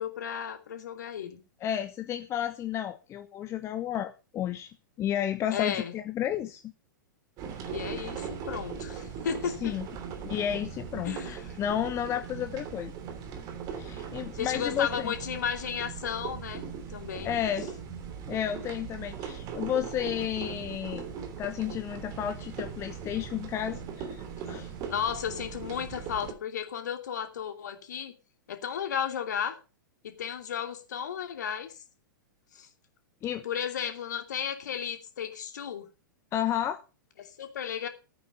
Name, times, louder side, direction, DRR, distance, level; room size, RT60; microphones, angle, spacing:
voice 1, 0.0-1.4 5.5-5.9 7.6-9.7 11.0-11.5 14.3-16.6 16.9-17.3 24.9-28.1 28.5-29.6 30.0-31.7 32.5-32.7 33.4-35.8 37.2-37.9, left 8 dB, 60° left, 6 dB, 2.8 m, -34 dB
voice 2, 1.6-4.7 5.0-6.6 9.4-9.9 10.2-12.9 13.7-15.1 17.2-17.7 18.3-21.0 21.4-24.7 33.2-33.4 36.3-36.8, left 10 dB, 25° left, 9 dB, 1.1 m, -32 dB
sound 1, 7.4-26.3, right 7 dB, 35° right, 3.1 m, -39 dB
15.5 x 9.1 x 5.4 m, 0.32 s
figure-of-eight pair, 100°, 11 cm